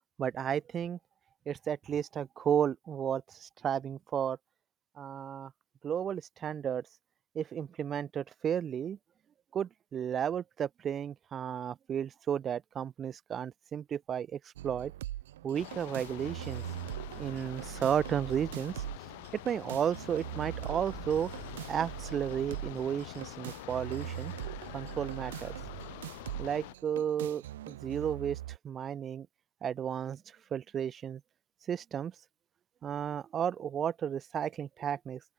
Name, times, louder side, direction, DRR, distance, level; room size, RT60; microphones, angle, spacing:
voice 1, 0.2-1.0 1.5-4.4 5.0-5.5 5.8-6.8 7.3-9.0 9.5-14.9 15.4-16.6 17.2-18.8 19.4-21.3 21.7-24.3 24.7-25.5 26.4-29.3 29.6-30.2 30.5-31.2 31.7-32.1 32.8-35.2, right 8 dB, 30° right, 0.8 m, -33 dB
sound 1, 14.6-28.6, right 14 dB, 80° right, 0.5 m, -42 dB
sound 2, 15.5-26.7, left 22 dB, 65° left, 1.4 m, -46 dB
sound 3, 23.4-27.0, left 12 dB, 85° left, 4.0 m, -59 dB
open air
hypercardioid pair, 110°, 0 cm